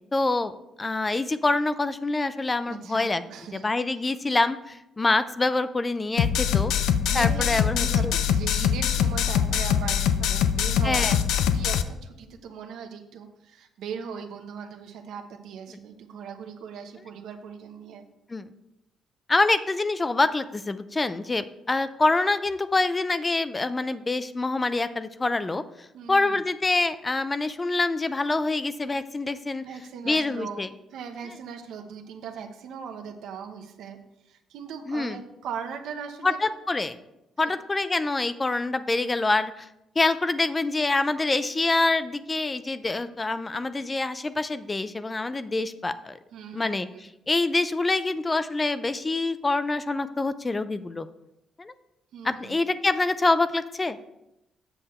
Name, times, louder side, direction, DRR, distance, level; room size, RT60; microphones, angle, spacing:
voice 1, 0.1-0.5 0.8-3.2 3.5-6.7 7.1-8.1 10.8-11.1 18.3-18.5 19.3-25.6 26.1-29.7 30.0-30.7 34.9-35.2 36.2-37.0 37.4-39.7 40.0-46.2 46.5-51.1 51.6-51.7 52.2-54.0, left 3 dB, 25° left, 13 dB, 0.4 m, -26 dB
voice 2, 2.7-3.7 4.0-4.1 7.0-18.0 25.9-26.4 29.6-30.6 30.9-34.0 34.2-36.4 37.4-37.5 46.3-47.1 52.1-52.6, right 7 dB, 80° right, 6 dB, 0.9 m, -39 dB
sound 1, 6.2-11.8, left 8 dB, 85° left, 0.5 m, -23 dB
7.8 x 6.4 x 4.3 m, 0.87 s
cardioid pair, 90°, 0 cm